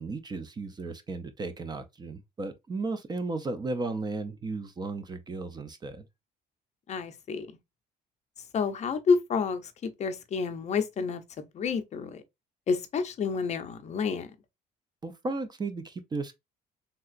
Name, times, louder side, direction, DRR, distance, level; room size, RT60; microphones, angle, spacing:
voice 1, 0.0-6.1 15.0-16.3, right 3 dB, 25° right, 0.4 m, -35 dB
voice 2, 6.9-7.5 8.5-12.2 12.7-14.3, left 5 dB, 40° left, 0.5 m, -29 dB
3.3 x 2.8 x 2.4 m
cardioid pair, 110°, 17 cm